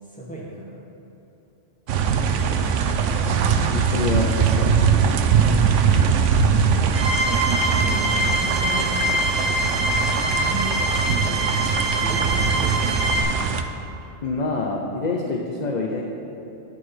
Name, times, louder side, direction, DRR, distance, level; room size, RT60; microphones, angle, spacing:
voice 1, 0.1-0.8 2.1-3.7 7.8-8.9 10.0-11.4 12.0-13.5, right 1 dB, 5° left, -6 dB, 2.1 m, -36 dB
sound 1, 1.9-13.6, right 6 dB, 80° right, 1.0 m, -21 dB
voice 2, 3.7-4.8 14.2-16.0, left 3 dB, 40° left, 0 dB, 0.8 m, -26 dB
sound 2, 6.9-13.2, equal, 40° right, 1.5 m, -24 dB
9.3 x 8.3 x 5.7 m, 2.9 s
omnidirectional pair, 1.2 m